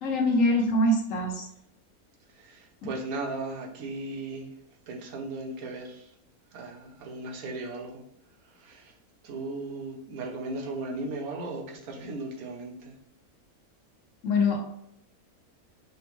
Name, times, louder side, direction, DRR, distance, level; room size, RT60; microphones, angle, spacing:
voice 1, 0.0-1.4 2.8-2.9 14.2-14.6, left 1 dB, 65° left, 0 dB, 1.2 m, -24 dB
voice 2, 2.4-4.5 4.9-6.1 6.5-8.0 8.6-8.9 9.2-12.9, right 2 dB, 75° right, 1 dB, 1.2 m, -36 dB
6.0 x 2.1 x 3.0 m, 0.73 s
omnidirectional pair, 1.6 m